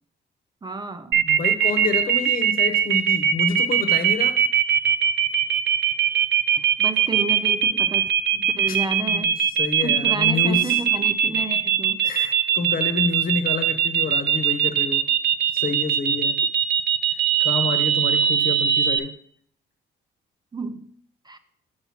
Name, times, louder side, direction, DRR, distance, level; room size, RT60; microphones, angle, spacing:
voice 1, 0.6-1.3 6.5-8.1 8.6-9.3 9.8-12.1 20.5-20.9 21.2-21.4, right 3 dB, 20° right, 9 dB, 0.4 m, -31 dB
sound 1, 1.1-19.0, right 9 dB, 60° right, 0.6 m, -20 dB
voice 2, 1.2-4.4 8.7-8.8 9.0-10.7 12.0-15.0 15.5-16.4 17.4-19.1, left 4 dB, 45° left, 8 dB, 1.1 m, -28 dB
7.0 x 4.3 x 5.8 m, 0.63 s
cardioid pair, 90°, 20 cm